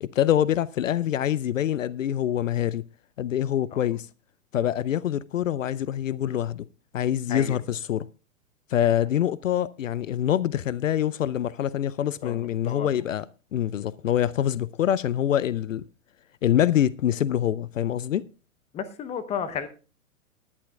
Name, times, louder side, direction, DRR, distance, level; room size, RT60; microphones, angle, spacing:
voice 1, 0.0-2.8 3.2-4.1 4.5-6.7 6.9-8.1 8.7-13.3 13.5-15.8 16.4-18.2, left 11 dB, 65° left, 0.5 m, -25 dB
voice 2, 7.3-7.6 12.2-13.1 18.7-19.7, left 7 dB, 15° left, 0.8 m, -33 dB
19.0 x 11.0 x 2.3 m
figure-of-eight pair, 110°, 41 cm